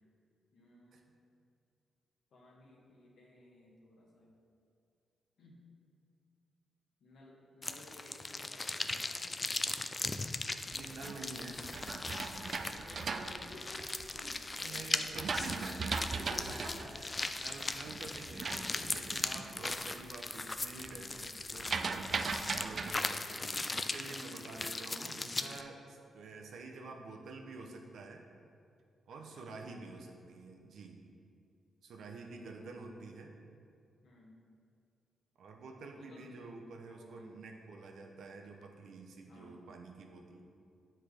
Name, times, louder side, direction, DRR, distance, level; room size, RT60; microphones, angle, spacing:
voice 1, 0.5-1.1 2.3-4.4 5.4-5.6 7.0-9.4 10.9-11.7 12.5-14.9 16.1-16.9 17.5-17.6 19.2-19.4 25.2-25.5 29.1-29.5 32.4-32.5 32.8-32.9 34.0-34.4 35.9-36.3 36.8-37.4 39.2-39.6, left 1 dB, 70° left, -3 dB, 1.3 m, -55 dB
sound 1, 7.6-25.6, left 3 dB, 30° left, 0.3 m, -39 dB
sound 2, 10.5-14.3 14.8-19.6 20.0-20.4 20.7-22.9, right 4 dB, 55° right, 0.3 m, -39 dB
voice 2, 10.7-11.6 14.6-17.1 17.4-28.2 29.1-31.0 31.8-33.3 35.4-40.4, right 3 dB, 75° right, 2 dB, 0.7 m, -48 dB
8.0 x 4.4 x 3.3 m, 2.4 s
cardioid pair, 70°, 0 cm